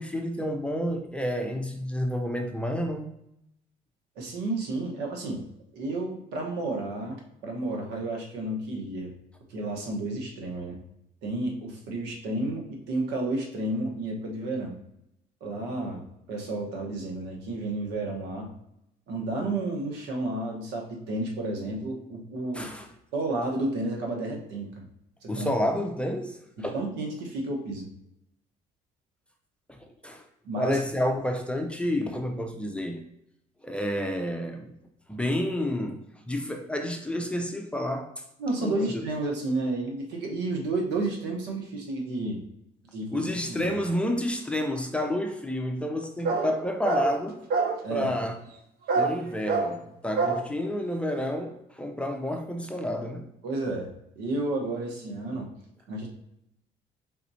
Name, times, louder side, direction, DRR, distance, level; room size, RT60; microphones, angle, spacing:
voice 1, 0.0-3.1 22.5-22.9 25.3-26.7 29.7-29.8 30.0-30.2 30.6-33.0 33.6-34.8 35.1-38.1 38.6-39.0 43.1-47.4 47.9-48.3 48.9-53.3, left 1 dB, 5° left, 0.6 m, -30 dB
voice 2, 4.2-5.4 5.7-9.1 9.5-10.8 11.2-14.8 15.4-18.5 19.1-22.7 23.1-24.8 25.2-25.5 26.6-27.9 30.4-30.8 38.4-42.4 42.9-43.8 47.8-48.1 53.4-53.9 54.2-55.5 55.9-56.1, right 2 dB, 90° right, 1.2 m, -31 dB
sound 1, 46.2-46.6 46.8-47.2 47.5-47.8 48.9-49.2 49.5-49.7 50.2-50.4, right 4 dB, 65° right, 0.7 m, -25 dB
4.2 x 4.1 x 2.7 m
cardioid pair, 110°, 17 cm